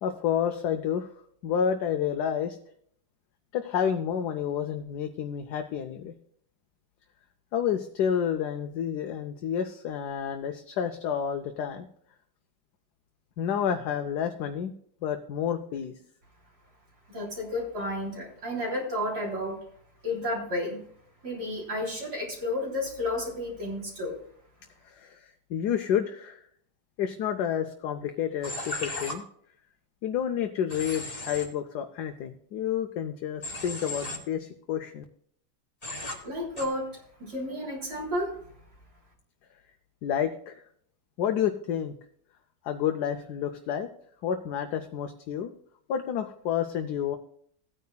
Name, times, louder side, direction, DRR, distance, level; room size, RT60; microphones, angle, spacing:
voice 1, 0.0-1.1 1.4-2.6 3.5-6.1 7.5-11.9 13.4-14.7 15.0-15.9 24.8-26.4 27.0-29.2 30.0-35.0 40.0-40.6 41.2-41.9 42.6-43.9 44.2-45.5 45.9-47.2, left 8 dB, 75° left, 6 dB, 1.2 m, -30 dB
voice 2, 17.1-19.6 20.0-20.8 21.2-24.2 36.1-38.4, left 1 dB, 65° right, -3 dB, 3.8 m, -32 dB
Human voice / Train, 28.4-29.1 30.7-31.5 33.4-34.2 35.8-36.2 36.6-36.7, left 1 dB, 25° left, 1.5 m, -35 dB
16.5 x 9.3 x 2.3 m, 0.65 s
omnidirectional pair, 1.8 m